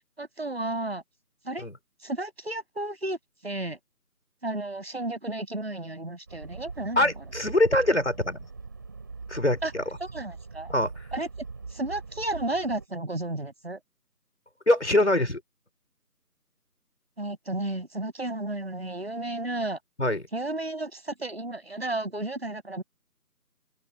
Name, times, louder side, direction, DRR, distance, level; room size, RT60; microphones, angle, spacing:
voice 1, 0.2-1.0 1.4-1.7 2.0-3.2 3.4-3.8 4.4-7.1 9.6-9.7 10.0-10.7 11.1-11.3 11.7-13.8 17.2-19.8 20.3-22.8, right 2 dB, 40° right, 6.6 m, -32 dB
sound 1, 6.3-12.9, right 4 dB, 10° right, 6.8 m, -42 dB
voice 2, 7.0-8.4 9.3-9.8 10.7-11.1 14.7-15.4 20.0-20.2, left 1 dB, 45° left, 4.9 m, -23 dB
open air
figure-of-eight pair, 170°, 48 cm